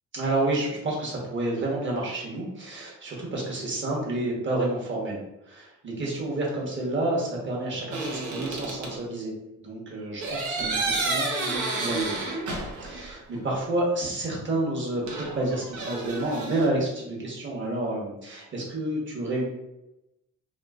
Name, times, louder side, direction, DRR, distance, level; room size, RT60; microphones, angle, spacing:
voice 1, 0.1-5.2 5.5-9.3 9.6-12.2 12.8-19.5, right 2 dB, 40° right, -3 dB, 1.1 m, -29 dB
sound 1, 7.9-8.9 10.2-13.1 13.3-13.4 15.1-16.7, right 3 dB, 75° right, 0.8 m, -30 dB
3.0 x 2.7 x 2.4 m, 0.93 s
cardioid pair, 90°, 30 cm